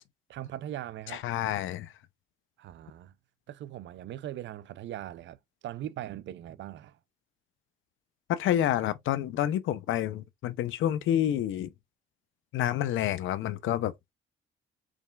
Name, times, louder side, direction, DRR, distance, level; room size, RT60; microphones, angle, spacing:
voice 1, 0.3-1.2 2.6-3.1 3.5-7.0, right 12 dB, 65° right, 0.5 m, -40 dB
voice 2, 1.1-1.9 8.3-11.7 12.5-14.1, left 11 dB, 80° left, 0.7 m, -28 dB
4.8 x 3.3 x 2.3 m
cardioid pair, 90°, 20 cm